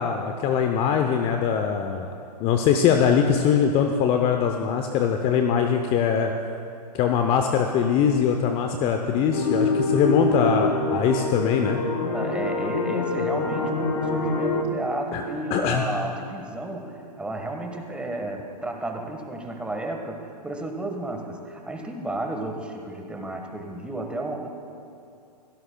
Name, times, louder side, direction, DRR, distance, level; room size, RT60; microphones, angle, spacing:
voice 1, 0.0-2.1 2.4-6.3 6.9-11.8 15.1-15.2 15.5-15.8, left 7 dB, 25° left, 5 dB, 0.7 m, -22 dB
sound 1, 9.3-14.6, left 2 dB, 55° left, 1.9 m, -25 dB
voice 2, 12.1-24.5, right 2 dB, 5° right, 2 dB, 1.4 m, -32 dB
26.5 x 17.0 x 2.3 m, 2.5 s
hypercardioid pair, 120°, 21 cm